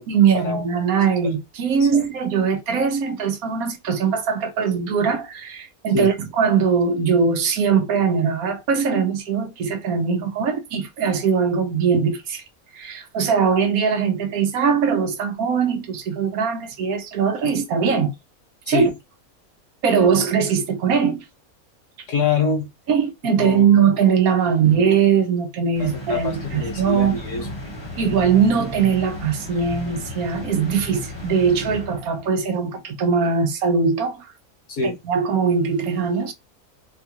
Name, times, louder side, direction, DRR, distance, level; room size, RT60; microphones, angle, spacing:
voice 1, 0.1-12.4 12.7-18.1 18.7-18.9 19.8-21.2 22.2-22.3 22.9-27.2 28.0-34.3 34.8-36.3, right 6 dB, 75° right, 1.2 m, -21 dB
voice 2, 22.1-22.7 23.4-23.8 25.8-28.0 34.7-35.0, left 4 dB, 60° left, 1.4 m, -25 dB
sound 1, 25.7-32.4, equal, 20° left, 0.9 m, -34 dB
4.3 x 2.3 x 2.8 m
omnidirectional pair, 1.5 m